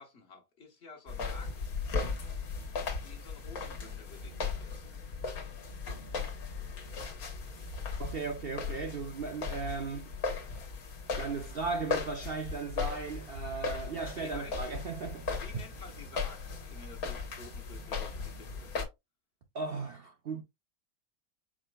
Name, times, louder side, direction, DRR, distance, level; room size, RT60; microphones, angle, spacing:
voice 1, 0.0-1.7 3.0-4.9 14.1-14.6 15.3-18.8, left 4 dB, 45° left, 1.3 m, -51 dB
sound 1, 1.1-18.9, left 4 dB, 75° left, 1.7 m, -37 dB
voice 2, 8.0-10.2 11.1-15.4 19.5-20.4, right 4 dB, 55° right, 0.7 m, -37 dB
5.0 x 4.3 x 2.3 m
omnidirectional pair, 1.6 m